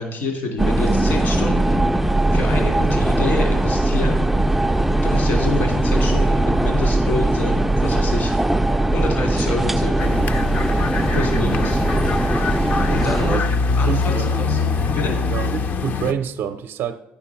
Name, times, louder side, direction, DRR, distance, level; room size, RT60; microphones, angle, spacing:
voice 1, 0.0-4.2 5.0-8.3 8.9-10.2 11.1-11.8 12.9-13.5 13.8-14.6 14.9-15.2, left 2 dB, 70° left, 2.6 m, -27 dB
sound 1, 0.6-13.4, right 1 dB, 5° right, 0.3 m, -19 dB
sound 2, 10.0-16.1, left 4 dB, 50° left, 0.6 m, -23 dB
voice 2, 13.9-14.5 15.3-17.0, right 8 dB, 70° right, 0.5 m, -27 dB
9.5 x 7.1 x 5.8 m
cardioid pair, 95°, 4 cm